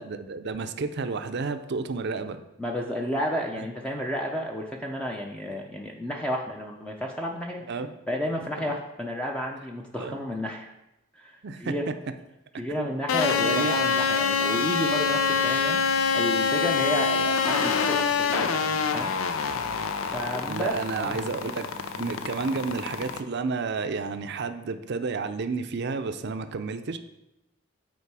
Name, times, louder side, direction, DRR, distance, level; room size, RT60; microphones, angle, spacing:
voice 1, 0.0-2.4 3.6-3.7 7.7-7.9 8.6-8.8 10.0-10.2 11.4-11.7 12.7-12.9 13.4-13.7 20.5-21.7 22.0-27.0, right 4 dB, 55° right, 9 dB, 0.5 m, -31 dB
voice 2, 2.6-7.6 8.1-10.7 11.2-11.3 11.6-11.8 12.6-19.2 20.1-21.2 22.0-22.2, equal, 5° left, 0 dB, 0.5 m, -32 dB
sound 1, 13.1-23.2, left 5 dB, 85° left, 0.5 m, -26 dB
8.3 x 4.4 x 4.7 m, 0.91 s
head